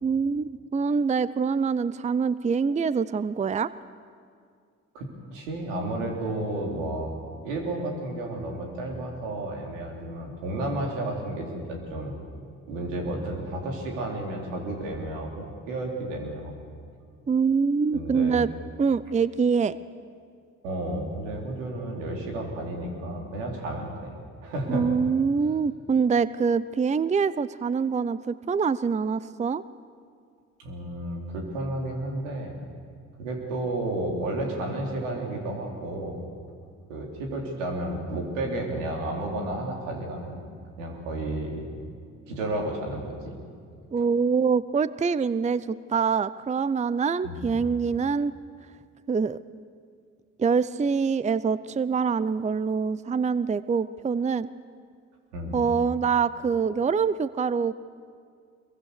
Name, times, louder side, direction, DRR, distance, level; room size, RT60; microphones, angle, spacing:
voice 1, 0.0-3.7 17.3-18.5 18.8-19.8 24.7-29.6 43.9-48.3 49.1-49.4 50.4-54.5 55.5-57.7, right 5 dB, 20° right, 17 dB, 0.6 m, -25 dB
voice 2, 4.9-7.1 7.4-12.2 12.7-16.5 17.9-18.4 20.6-24.1 24.4-24.9 30.6-32.6 33.2-36.2 36.9-40.5 40.8-41.7 42.3-43.4 47.2-47.6 55.3-55.6, right 1 dB, 85° right, 0 dB, 3.5 m, -32 dB
24.0 x 22.5 x 6.8 m, 2.2 s
hypercardioid pair, 50°, 37 cm